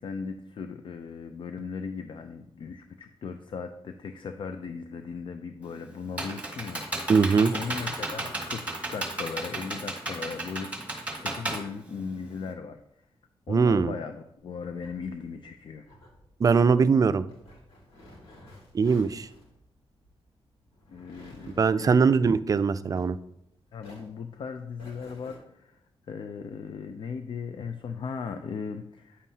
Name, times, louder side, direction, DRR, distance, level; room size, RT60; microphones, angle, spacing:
voice 1, 0.0-6.8 7.5-12.8 13.5-15.9 20.9-22.0 23.7-25.8 26.1-29.3, left 5 dB, 60° left, 8 dB, 0.5 m, -37 dB
Computer keyboard, 5.6-12.5, right 2 dB, 15° right, 1.7 m, -34 dB
voice 2, 7.1-7.5 13.5-13.9 16.4-17.3 18.7-19.3 21.6-23.2, right 5 dB, 35° right, 13 dB, 0.4 m, -21 dB
sound 1, 14.4-23.5 23.8-25.4, left 1 dB, 85° left, 2.3 m, -53 dB
9.7 x 7.3 x 2.8 m, 0.80 s
cardioid pair, 105°, 10 cm